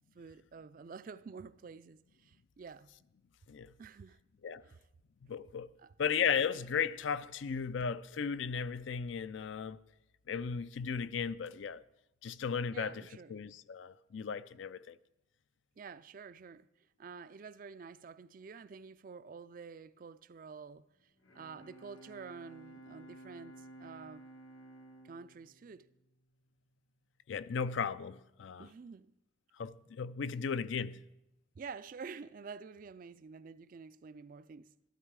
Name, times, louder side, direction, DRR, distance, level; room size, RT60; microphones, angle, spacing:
voice 1, 0.1-2.9 3.8-4.2 4.6-4.8 5.8-5.9 12.7-13.4 15.8-16.7 17.0-24.3 25.0-25.9 28.6-29.1 31.5-34.7, right 5 dB, 45° right, 0.3 m, -49 dB
voice 2, 5.3-5.7 6.0-9.8 10.3-11.8 12.2-13.0 13.3-15.0 27.3-28.7 29.6-31.0, left 6 dB, 70° left, 0.4 m, -35 dB
Bowed string instrument, 21.0-26.8, right 1 dB, 90° left, 1.8 m, -55 dB
13.0 x 12.5 x 4.7 m
head